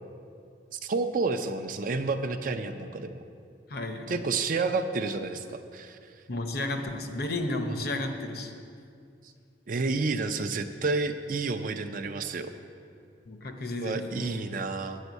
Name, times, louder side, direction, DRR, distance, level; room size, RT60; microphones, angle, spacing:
voice 1, 0.7-3.1 4.1-6.0 9.7-12.5 13.8-15.0, right 3 dB, 50° right, 8 dB, 0.5 m, -30 dB
voice 2, 3.7-4.2 6.3-8.5 13.3-14.5, left 2 dB, 60° left, 5 dB, 0.8 m, -33 dB
9.2 x 5.4 x 8.1 m, 2.4 s
head